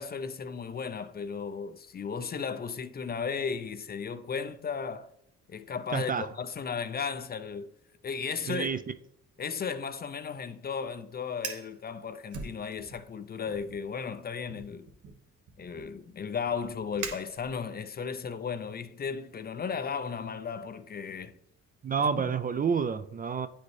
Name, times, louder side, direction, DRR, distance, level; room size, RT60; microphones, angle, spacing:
voice 1, 0.0-5.1 5.5-7.7 8.0-8.7 9.4-14.9 15.6-21.3 22.0-22.3, left 6 dB, 30° left, 0.4 m, -35 dB
voice 2, 5.9-6.3 8.5-8.8 21.8-23.5, right 6 dB, 30° right, 0.4 m, -29 dB
Fire, 11.3-11.7 12.3-13.1 13.4-13.8 14.5-17.8, right 5 dB, 70° right, 1.0 m, -43 dB
9.4 x 4.2 x 3.2 m
cardioid pair, 90°, 30 cm